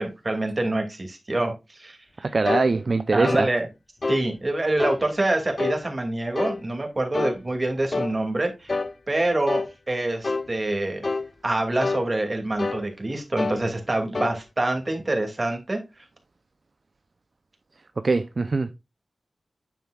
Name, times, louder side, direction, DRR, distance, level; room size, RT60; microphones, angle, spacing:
voice 1, 0.0-2.0 3.1-3.7 4.1-8.8 9.1-11.0 11.4-16.1, right 2 dB, 35° right, 2.5 m, -26 dB
voice 2, 2.2-3.5 18.0-18.7, right 3 dB, 55° right, 0.6 m, -22 dB
sound 1, 2.5-2.7 3.2-3.5 4.0-4.3 4.8-5.0 5.6-5.8 6.4-6.6 7.1-7.4 7.9-8.1 8.7-8.9 9.5-9.7 10.2-10.5 11.0-11.3 11.8-12.1 12.6-12.9 13.4-13.6 14.1-14.4, left 3 dB, 45° left, 0.5 m, -27 dB
9.3 x 7.2 x 2.4 m
wide cardioid pair, 80°, 0 cm